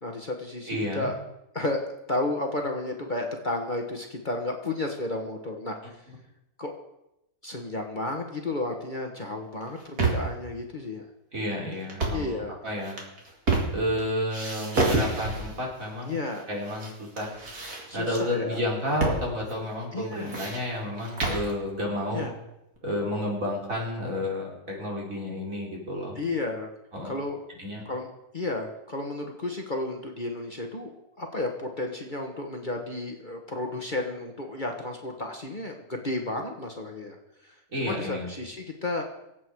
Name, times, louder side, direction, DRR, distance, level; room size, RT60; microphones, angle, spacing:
voice 1, 0.0-1.1 1.5-5.7 6.6-6.7 7.4-11.0 12.1-12.6 13.9-14.1 16.0-16.4 17.9-18.6 19.9-20.4 22.1-22.4 26.2-26.7 27.0-27.4 27.8-37.2 37.4-37.5 37.8-39.0, left 2 dB, 35° left, 2 dB, 1.4 m, -32 dB
voice 2, 0.7-1.1 11.3-13.0 13.7-16.2 16.5-17.3 17.9-22.2 22.8-26.2 26.9-27.1 27.6-27.8 37.7-38.3, left 1 dB, 60° right, -2 dB, 4.3 m, -31 dB
sound 1, 9.6-10.4 11.8-12.3 12.8-14.0 14.3-15.6 16.3-16.9 17.2-18.2 19.0-19.2 19.5-19.6 20.0-21.5, right 3 dB, 75° right, 3.0 m, -28 dB
25.0 x 8.5 x 4.7 m, 0.88 s
omnidirectional pair, 1.6 m